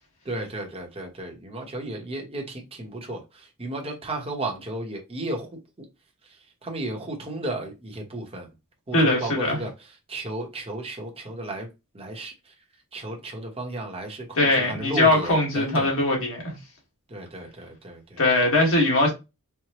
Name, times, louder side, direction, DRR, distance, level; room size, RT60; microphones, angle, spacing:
voice 1, 0.2-5.5 6.6-8.5 8.9-9.7 10.1-11.7 11.9-12.3 12.9-15.9 17.1-18.2, right 2 dB, 25° right, 1.0 m, -34 dB
voice 2, 8.9-9.6 14.3-16.5 18.2-19.1, left 2 dB, 60° left, 1.7 m, -21 dB
4.6 x 2.2 x 2.9 m
head